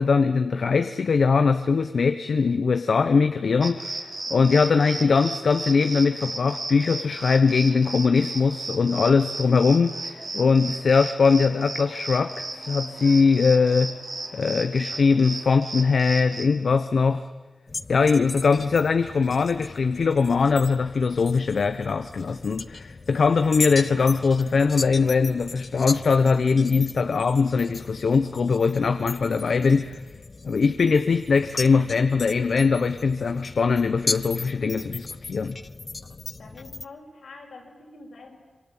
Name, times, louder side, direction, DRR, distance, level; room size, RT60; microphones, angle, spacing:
voice 1, 0.0-13.9 14.3-17.3 17.9-30.0 30.4-35.6, left 5 dB, 75° left, 10 dB, 1.0 m, -21 dB
sound 1, 3.6-16.4, right 2 dB, 40° right, 4.0 m, -35 dB
sound 2, 17.7-36.9, left 3 dB, 45° left, 0.9 m, -37 dB
voice 2, 36.4-38.4, left 3 dB, 90° left, 1 dB, 6.4 m, -46 dB
25.5 x 25.5 x 9.0 m, 1.3 s
wide cardioid pair, 110°, 0 cm